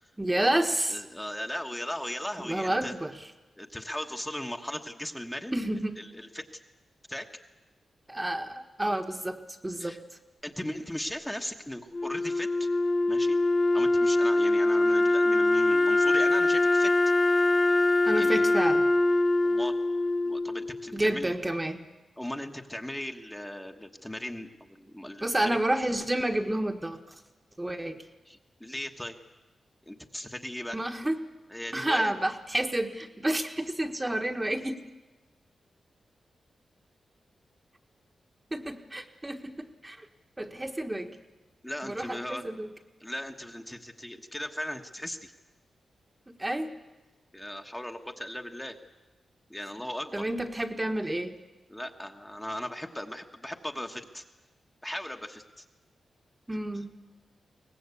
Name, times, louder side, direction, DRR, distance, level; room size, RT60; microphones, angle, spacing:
voice 1, 0.2-1.0 2.4-3.1 5.5-6.0 8.1-10.0 18.1-18.9 20.9-21.8 25.2-27.0 27.6-28.0 30.7-31.2 31.7-34.8 38.5-40.1 40.4-41.2 41.8-42.7 46.4-46.7 50.1-51.4 56.5-56.9, right 1 dB, 15° right, 6 dB, 1.3 m, -30 dB
voice 2, 0.9-2.9 3.6-5.7 6.0-6.4 7.1-7.3 9.8-10.0 10.4-12.7 13.1-13.4 13.7-16.9 18.1-18.4 19.4-19.7 20.2-21.3 22.2-25.6 28.3-29.1 29.9-30.8 31.5-32.1 41.6-42.5 43.0-45.3 47.3-48.8 49.5-50.3 51.7-54.2 54.8-55.6, left 1 dB, 10° left, 3 dB, 1.2 m, -38 dB
Wind instrument woodwind instrument, 11.9-21.0, left 2 dB, 30° left, 0.9 m, -23 dB
22.5 x 19.0 x 8.4 m, 1.1 s
wide cardioid pair, 115°, 0 cm